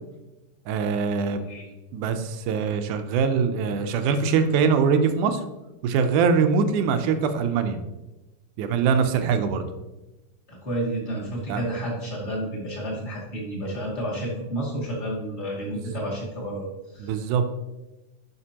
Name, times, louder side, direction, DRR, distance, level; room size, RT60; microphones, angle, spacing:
voice 1, 0.7-1.5 1.9-5.4 5.8-7.8 8.6-9.6 11.5-11.6 17.0-17.4, right 6 dB, 80° right, 8 dB, 2.1 m, -23 dB
voice 2, 10.5-16.7 16.9-17.1, right 1 dB, 20° left, -5 dB, 1.8 m, -30 dB
11.0 x 5.8 x 2.9 m, 1.0 s
omnidirectional pair, 3.8 m